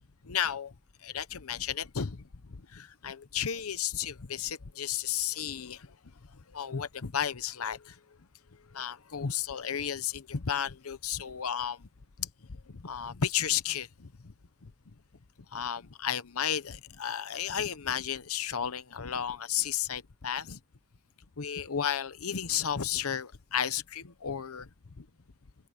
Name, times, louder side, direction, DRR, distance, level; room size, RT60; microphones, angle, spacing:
voice 1, 0.2-0.7 1.0-2.2 2.5-5.9 6.5-8.0 8.7-11.9 12.2-12.3 12.7-14.3 14.6-14.7 15.5-20.6 21.4-24.7 25.0-25.1, left 8 dB, 75° left, 0.9 m, -33 dB
head